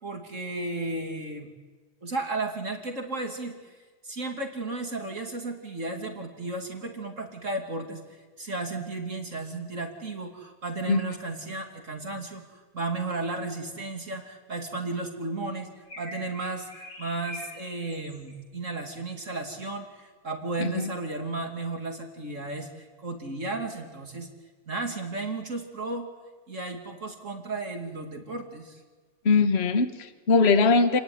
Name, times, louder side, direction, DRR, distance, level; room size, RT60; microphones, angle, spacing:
voice 1, 0.0-1.5 2.0-3.8 4.0-24.3 24.7-26.1 26.5-28.8, right 2 dB, 50° right, 3 dB, 2.9 m, -34 dB
sound 1, 15.9-18.4, left 2 dB, 85° left, 8.5 m, -44 dB
voice 2, 20.6-20.9 29.2-31.0, left 4 dB, 40° left, 9 dB, 1.6 m, -21 dB
29.0 x 20.0 x 9.5 m, 1.4 s
omnidirectional pair, 1.7 m